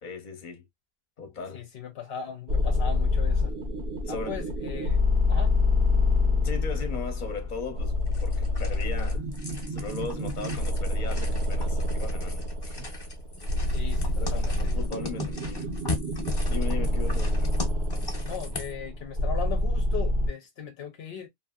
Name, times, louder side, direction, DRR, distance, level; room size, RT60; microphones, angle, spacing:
voice 1, 0.0-0.7 1.2-1.7 4.0-4.4 6.4-9.3 9.7-12.9 14.1-15.7 16.4-17.5, left 4 dB, 50° left, 1.0 m, -38 dB
voice 2, 1.5-3.5 4.1-5.0 5.3-5.5 13.7-14.8 18.3-21.3, left 7 dB, 75° left, 0.9 m, -38 dB
sound 1, 2.5-20.3, left 2 dB, 75° right, 1.1 m, -27 dB
sound 2, 8.1-18.8, left 3 dB, 25° left, 0.7 m, -39 dB
2.8 x 2.6 x 2.3 m
omnidirectional pair, 1.1 m